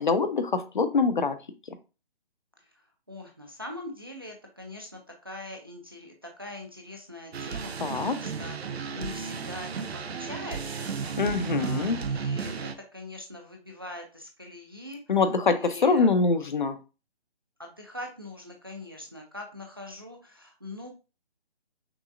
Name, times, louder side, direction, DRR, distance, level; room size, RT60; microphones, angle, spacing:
voice 1, 0.0-1.4 7.8-8.2 11.2-12.0 15.1-16.7, left 4 dB, 50° left, 11 dB, 0.7 m, -24 dB
voice 2, 3.1-5.0 5.2-6.1 6.4-8.6 8.9-10.9 11.5-15.0 15.6-16.1 17.6-20.9, left 1 dB, 25° right, 3 dB, 0.5 m, -42 dB
sound 1, 7.3-12.7, right 5 dB, 90° right, 0.7 m, -33 dB
6.0 x 2.9 x 2.5 m, 0.31 s
hypercardioid pair, 170°, 31 cm